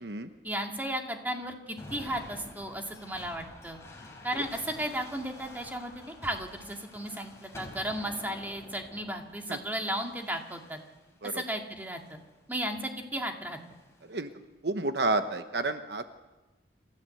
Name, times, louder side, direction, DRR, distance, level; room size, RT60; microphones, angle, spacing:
voice 1, 0.4-3.8 4.2-10.8 11.3-12.2 12.5-13.6, right 1 dB, 10° right, 2 dB, 2.2 m, -35 dB
sound 1, 1.8-11.1 11.8-12.4 13.5-14.1, left 1 dB, 15° left, 4.3 m, -49 dB
voice 2, 14.6-16.0, right 2 dB, 65° right, 9 dB, 1.0 m, -30 dB
28.0 x 14.5 x 7.8 m, 1.1 s
head